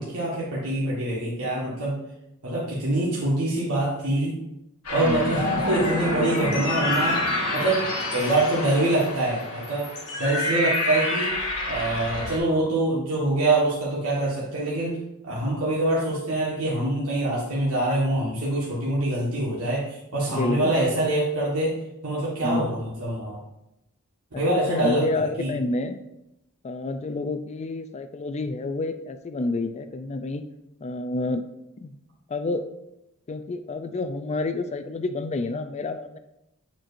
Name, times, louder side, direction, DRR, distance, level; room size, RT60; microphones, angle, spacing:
voice 1, 0.0-2.0 2.4-4.4 4.9-7.2 7.5-9.9 10.2-15.0 15.2-21.7 22.0-23.4 24.4-25.5, right 2 dB, 80° right, -6 dB, 1.6 m, -25 dB
sound 1, 4.8-12.4, left 2 dB, 85° left, 1.6 m, -27 dB
voice 2, 5.0-5.5 20.3-20.7 22.4-22.8 24.5-26.0 26.6-30.4 30.8-31.4 31.8-32.0 32.3-32.7 33.3-36.2, left 2 dB, 30° left, 9 dB, 0.4 m, -29 dB
8.8 x 4.5 x 2.6 m, 0.86 s
head